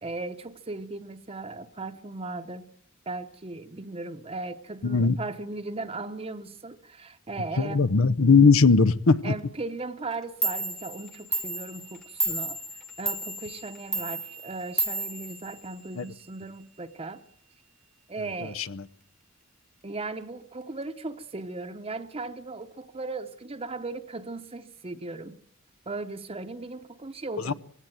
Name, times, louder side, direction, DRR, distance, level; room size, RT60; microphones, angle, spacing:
voice 1, 0.0-2.7 3.1-7.9 9.2-17.2 18.1-18.6 19.8-25.4 25.9-27.5, right 3 dB, 30° right, 0.9 m, -37 dB
voice 2, 4.8-5.2 7.6-9.3 16.0-16.1 18.4-18.8 27.5-27.6, left 4 dB, 75° left, 0.8 m, -20 dB
Clock, 10.1-10.2 10.4-16.1, right 2 dB, 5° left, 1.1 m, -32 dB
20.5 x 16.5 x 9.2 m
head